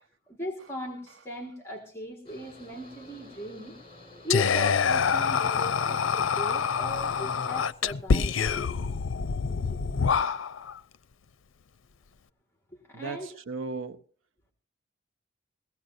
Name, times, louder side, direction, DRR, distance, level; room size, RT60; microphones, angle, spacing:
voice 1, 0.0-3.7 4.2-8.4 9.5-9.8 12.7-13.3, equal, 15° left, 1.7 m, -38 dB
Mechanical fan, 2.3-7.6, left 2 dB, 30° left, 5.8 m, -50 dB
Whispering, 4.3-10.8, left 6 dB, 85° left, 0.5 m, -26 dB
voice 2, 12.9-14.0, right 3 dB, 90° right, 0.8 m, -36 dB
21.5 x 17.0 x 2.6 m
head